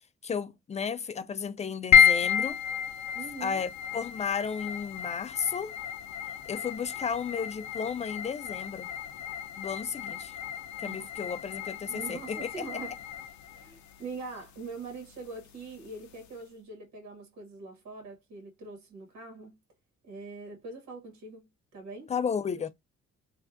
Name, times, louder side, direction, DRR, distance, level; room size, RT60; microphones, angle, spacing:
voice 1, 0.2-2.6 3.4-5.7 6.5-8.9 9.6-10.3 10.8-12.5 22.1-22.7, left 6 dB, 25° left, 0.4 m, -33 dB
sound 1, 1.9-16.4, left 8 dB, 70° left, 0.6 m, -31 dB
voice 2, 3.1-3.6 10.8-11.1 11.9-13.0 13.5-19.6 20.0-21.5 21.7-22.1, right 3 dB, 65° right, 1.7 m, -43 dB
3.3 x 2.4 x 2.4 m
cardioid pair, 90°, 30 cm